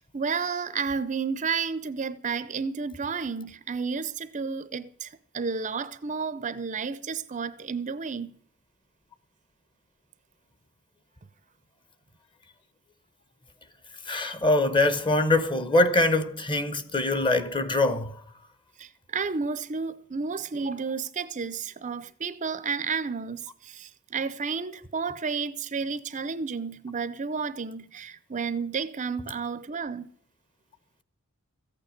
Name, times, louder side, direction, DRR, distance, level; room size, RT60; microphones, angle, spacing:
voice 1, 0.1-8.4 18.8-30.1, right 5 dB, 35° right, 0.6 m, -31 dB
voice 2, 14.1-18.1, left 2 dB, 20° left, 1.0 m, -23 dB
14.5 x 9.1 x 6.5 m
head